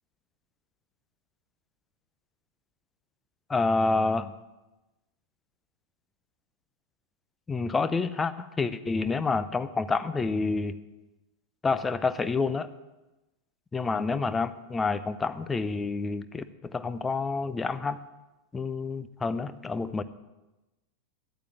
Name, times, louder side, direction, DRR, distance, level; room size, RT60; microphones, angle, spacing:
voice 1, 3.5-4.3 7.5-10.8 11.6-12.7 13.7-18.0 18.5-20.0, left 4 dB, 15° left, 13 dB, 0.7 m, -28 dB
11.5 x 8.6 x 7.5 m, 1.0 s
figure-of-eight pair, 90°, 0 cm